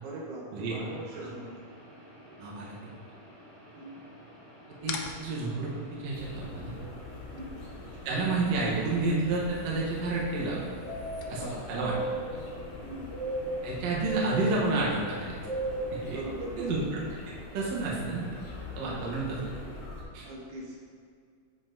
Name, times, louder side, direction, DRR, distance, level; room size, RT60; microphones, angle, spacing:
voice 1, 0.0-1.5 3.8-4.0 7.3-7.6 11.3-11.6 12.8-13.1 16.1-16.8 18.8-19.1 20.2-20.8, right 1 dB, 90° right, -4 dB, 2.6 m, -40 dB
sound 1, 0.6-19.9, equal, 20° right, 1.0 m, -52 dB
voice 2, 2.4-2.8 4.8-6.7 8.1-10.7 11.3-11.9 13.6-15.4 15.9-16.2 16.6-17.0 17.5-18.2 18.8-19.4 20.1-20.3, right 3 dB, 70° right, -4 dB, 2.0 m, -30 dB
sound 2, 4.8-11.8, left 5 dB, 85° left, 1.4 m, -46 dB
sound 3, 6.1-20.0, right 1 dB, 70° left, 2.5 m, -39 dB
10.5 x 4.3 x 2.6 m, 2.2 s
omnidirectional pair, 3.4 m